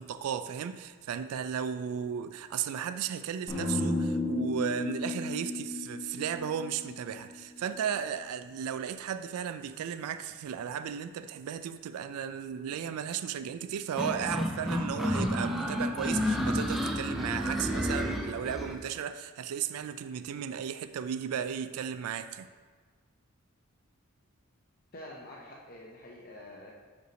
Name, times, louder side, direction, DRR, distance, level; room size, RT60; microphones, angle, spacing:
voice 1, 0.0-22.5, right 8 dB, 85° right, 0.3 m, -35 dB
sound 1, 3.5-7.6, left 2 dB, 25° left, 1.6 m, -33 dB
sound 2, 14.0-18.8, equal, ahead, 0.3 m, -30 dB
voice 2, 24.9-26.7, left 1 dB, 40° left, 0.7 m, -47 dB
5.5 x 4.5 x 5.0 m
head